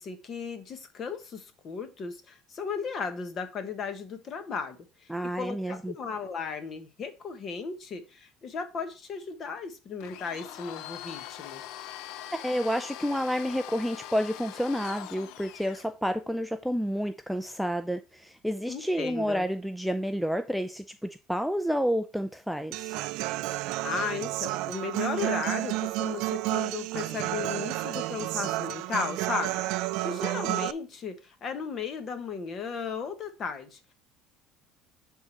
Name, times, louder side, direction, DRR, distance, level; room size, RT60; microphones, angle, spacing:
voice 1, 0.0-11.6 18.7-19.4 23.8-33.9, left 5 dB, 35° left, 1.3 m, -35 dB
voice 2, 5.1-5.9 12.3-23.0, equal, ahead, 0.4 m, -30 dB
Domestic sounds home sounds, 10.0-15.9, left 13 dB, 70° left, 0.5 m, -42 dB
Human voice / Acoustic guitar, 22.7-30.7, right 18 dB, 65° right, 0.4 m, -31 dB
10.5 x 3.7 x 4.5 m
cardioid pair, 150°, 0 cm